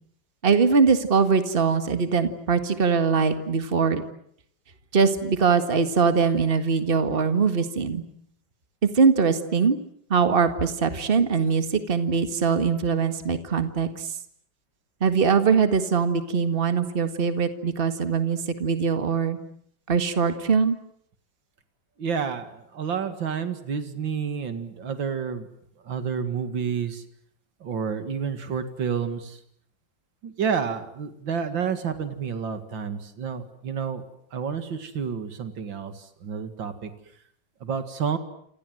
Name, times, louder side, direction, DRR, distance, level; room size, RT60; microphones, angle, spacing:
voice 1, 0.4-4.0 4.9-8.0 8.8-9.8 10.1-14.1 15.0-19.4 19.9-20.8, right 5 dB, 30° right, 9 dB, 1.9 m, -22 dB
voice 2, 22.0-25.5 25.9-27.0 27.6-29.4 30.2-34.0 34.3-35.9 36.2-36.9 37.6-38.2, right 6 dB, 80° right, 9 dB, 2.8 m, -29 dB
28.5 x 27.0 x 7.8 m, 0.69 s
omnidirectional pair, 2.0 m